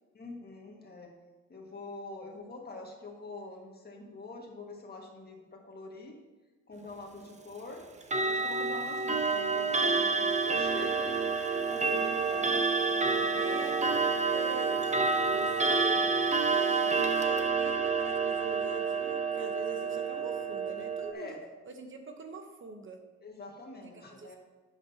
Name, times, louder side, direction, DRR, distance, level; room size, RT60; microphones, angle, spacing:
voice 1, 0.1-1.1 1.5-6.2 6.7-7.8 8.2-12.5 13.1-13.6 21.1-21.4 23.2-24.4, left 3 dB, 30° left, 1 dB, 1.8 m, -45 dB
Clock, 8.0-21.1, right 4 dB, 25° right, 0.8 m, -28 dB
voice 2, 13.3-14.8 15.3-16.2 16.4-21.4 21.7-23.0 23.9-24.4, right 2 dB, 40° right, 5 dB, 1.0 m, -44 dB
9.4 x 8.1 x 2.8 m, 1.3 s
cardioid pair, 90°, 30 cm